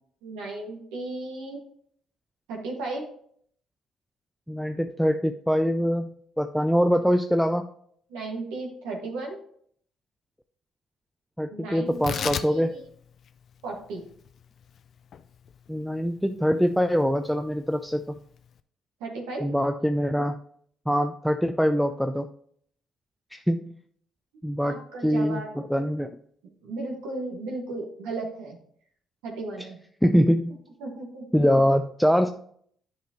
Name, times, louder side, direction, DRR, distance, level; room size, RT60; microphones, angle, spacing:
voice 1, 0.2-1.6 2.5-3.1 8.1-9.4 11.5-12.6 13.6-14.0 19.0-19.4 24.6-25.5 26.6-28.6 29.2-29.8 30.8-31.3, right 2 dB, 80° right, 1 dB, 1.6 m, -35 dB
voice 2, 4.5-7.7 11.4-12.8 15.7-18.2 19.4-20.4 20.9-22.3 23.3-23.7 24.4-26.1 30.0-30.6 31.3-32.3, equal, ahead, 7 dB, 0.5 m, -24 dB
Tearing, 11.9-18.6, left 8 dB, 55° left, 0.4 m, -39 dB
10.0 x 5.0 x 3.0 m, 0.62 s
hypercardioid pair, 55°, 0 cm